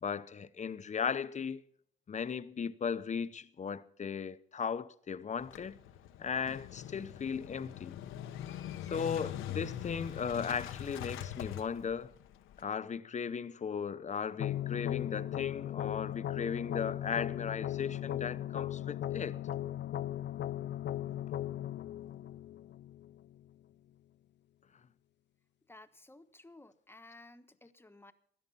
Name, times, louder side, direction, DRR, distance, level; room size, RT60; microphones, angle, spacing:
voice 1, 0.0-1.6 2.1-5.8 6.2-8.0 8.9-12.1 12.6-19.4, left 6 dB, 35° left, 0.8 m, -37 dB
Motorcycle / Engine starting, 5.4-12.6, left 11 dB, 85° left, 1.0 m, -43 dB
sound 1, 14.4-23.4, left 12 dB, 65° left, 0.6 m, -37 dB
voice 2, 25.7-28.1, left 2 dB, 10° left, 1.2 m, -55 dB
17.0 x 11.5 x 5.5 m
cardioid pair, 90°, 20 cm